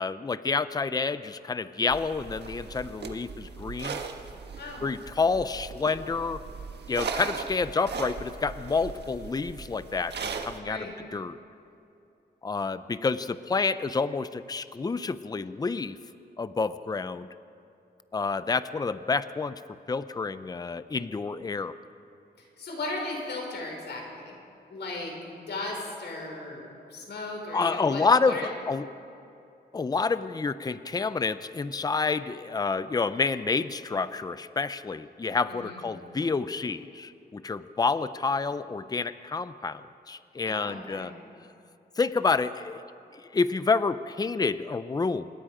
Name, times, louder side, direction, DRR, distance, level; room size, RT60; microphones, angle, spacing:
voice 1, 0.0-4.0 4.8-6.4 6.9-11.4 12.4-16.0 16.4-17.3 18.1-19.6 19.9-21.8 27.5-28.9 29.7-41.1 42.0-42.8 43.1-45.3, left 4 dB, 20° left, 13 dB, 0.5 m, -28 dB
sound 1, 1.9-10.6, right 5 dB, 80° right, 1.5 m, -38 dB
voice 2, 4.6-4.9 7.1-7.2 10.6-10.9 22.6-24.3 24.7-25.2 25.5-26.6 26.9-28.5 35.5-35.8 40.5-41.1, left 2 dB, 90° left, 0 dB, 5.5 m, -36 dB
27.0 x 21.0 x 5.1 m, 2.7 s
wide cardioid pair, 165°, 17 cm